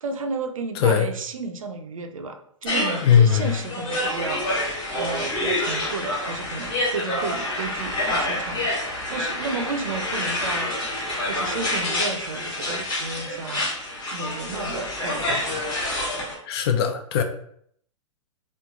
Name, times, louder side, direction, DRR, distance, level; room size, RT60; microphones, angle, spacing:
voice 1, 0.0-15.7, right 3 dB, 85° right, 0.4 m, -33 dB
voice 2, 0.8-1.1 3.0-3.5 15.3-15.4 16.5-17.2, left 8 dB, 50° left, 0.4 m, -19 dB
sound 1, 2.7-16.3, left 1 dB, 25° left, 1.0 m, -27 dB
3.0 x 2.4 x 2.3 m
hypercardioid pair, 115°, 17 cm